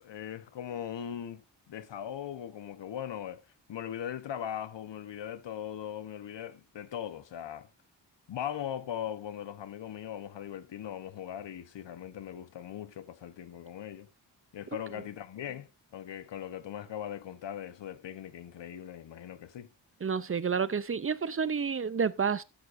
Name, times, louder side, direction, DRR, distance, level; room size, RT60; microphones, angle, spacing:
voice 1, 0.0-3.4 3.7-7.7 8.3-14.1 14.5-19.7, left 10 dB, 90° left, 1.1 m, -39 dB
voice 2, 20.0-22.4, right 6 dB, 30° right, 0.5 m, -29 dB
13.5 x 10.5 x 2.6 m
wide cardioid pair, 115°, 42 cm